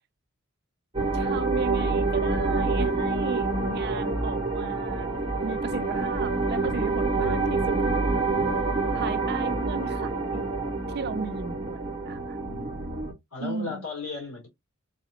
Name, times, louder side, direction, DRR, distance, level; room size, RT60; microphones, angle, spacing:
sound 1, 0.9-13.1, right 3 dB, 25° right, 1.2 m, -27 dB
voice 1, 1.1-5.1 5.4-7.8 8.9-10.5 10.9-12.4 13.4-13.8, right 5 dB, 50° right, 0.4 m, -35 dB
voice 2, 8.8-9.1 12.4-12.9 13.3-14.5, left 4 dB, 85° left, 2.5 m, -37 dB
3.9 x 2.7 x 2.8 m
head